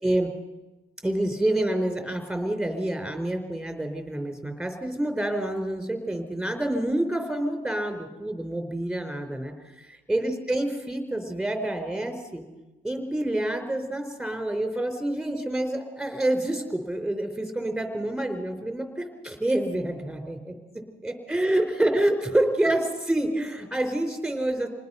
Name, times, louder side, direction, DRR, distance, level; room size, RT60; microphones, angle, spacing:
voice 1, 1.0-12.4 12.8-20.5 21.0-24.7, right 1 dB, 5° right, 6 dB, 4.3 m, -27 dB
27.0 x 19.5 x 5.8 m, 1.1 s
cardioid pair, 90°, 20 cm